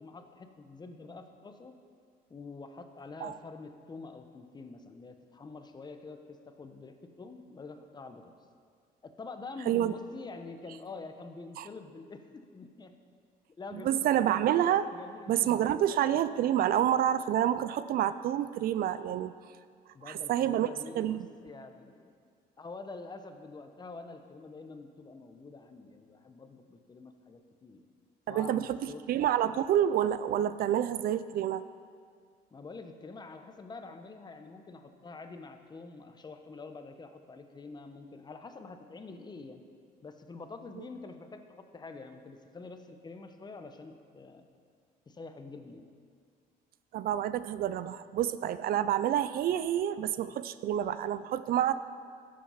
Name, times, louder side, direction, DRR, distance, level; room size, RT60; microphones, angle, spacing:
voice 1, 0.0-1.8 2.3-8.3 9.0-12.9 13.6-14.3 14.8-15.8 19.9-22.2 22.6-27.8 28.3-29.6 32.5-39.6 40.0-44.5 45.1-45.9, left 3 dB, 25° left, 7 dB, 0.9 m, -46 dB
voice 2, 13.7-14.9 15.3-19.3 20.0-20.7 20.9-21.3 28.3-31.7 46.9-51.8, right 11 dB, 60° right, 14 dB, 0.4 m, -28 dB
13.0 x 7.6 x 5.7 m, 2.1 s
cardioid pair, 110°, 17 cm